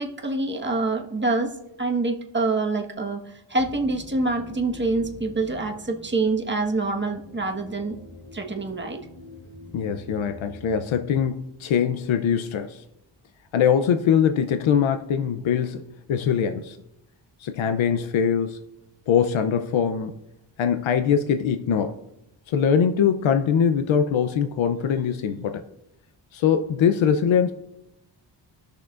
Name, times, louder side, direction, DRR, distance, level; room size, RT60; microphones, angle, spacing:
voice 1, 0.0-1.5 1.8-3.2 3.5-8.0 8.3-9.0, right 3 dB, 25° right, 2 dB, 1.3 m, -26 dB
sound 1, 3.6-11.0, left 2 dB, 40° left, 1.5 m, -45 dB
voice 2, 9.7-12.8 13.5-15.8 16.1-16.8 17.4-18.6 19.1-20.1 20.6-22.0 22.5-25.6 26.3-27.5, left 7 dB, 90° left, 8 dB, 0.7 m, -22 dB
19.5 x 6.6 x 2.5 m, 0.87 s
cardioid pair, 80°, 46 cm